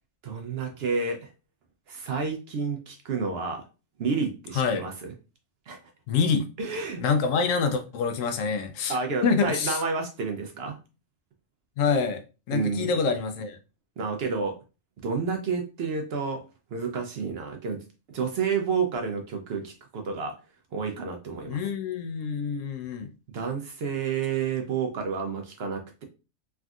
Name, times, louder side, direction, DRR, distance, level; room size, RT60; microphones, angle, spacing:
voice 1, 0.2-1.3 1.9-3.6 4.0-5.1 5.7-5.8 6.6-7.0 8.9-10.8 12.5-12.9 14.0-14.6 15.0-16.4 16.7-17.8 18.1-20.3 20.7-21.6 23.3-26.0, right 5 dB, 65° right, 0.7 m, -30 dB
voice 2, 6.1-6.5 7.0-9.0 9.2-9.8 11.8-12.2 12.5-13.6 21.5-23.1, left 5 dB, 80° left, 1.0 m, -26 dB
3.4 x 2.5 x 2.3 m
omnidirectional pair, 1.3 m